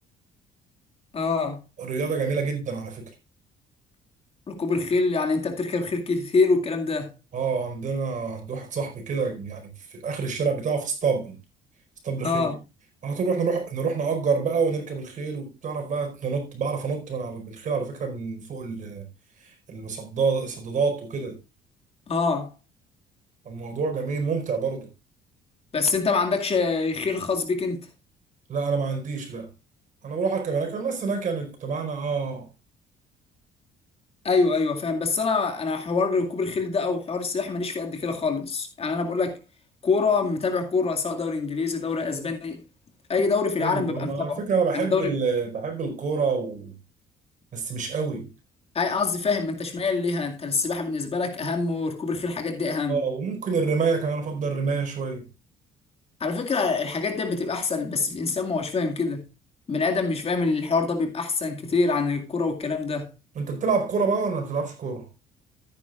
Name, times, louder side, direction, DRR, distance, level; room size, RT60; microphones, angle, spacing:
voice 1, 1.1-1.6 4.5-7.1 12.2-12.6 22.1-22.5 25.7-27.9 34.2-39.4 39.8-42.6 43.1-44.4 44.7-45.1 48.7-53.0 56.2-59.3 59.7-63.1, left 4 dB, 35° left, 2.2 m, -25 dB
voice 2, 1.8-3.1 7.3-11.4 12.0-12.5 13.0-19.0 19.4-21.4 23.4-24.9 28.5-29.5 30.0-32.5 43.6-46.8 47.5-48.3 52.9-55.3 63.3-65.1, right 5 dB, 50° right, 4.7 m, -27 dB
14.0 x 9.6 x 2.5 m
cardioid pair, 110°, 17 cm